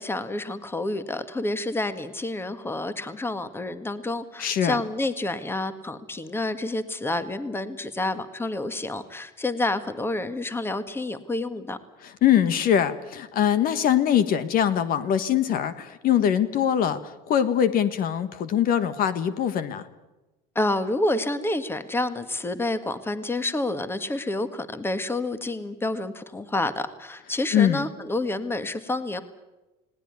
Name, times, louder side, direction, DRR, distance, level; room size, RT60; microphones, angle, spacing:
voice 1, 0.0-11.8 20.6-29.2, left 2 dB, 15° left, 11 dB, 1.8 m, -29 dB
voice 2, 4.4-4.8 12.0-19.8 27.5-27.8, left 9 dB, 55° left, 12 dB, 1.6 m, -22 dB
19.5 x 18.5 x 9.7 m, 1.0 s
supercardioid pair, 105°, 17 cm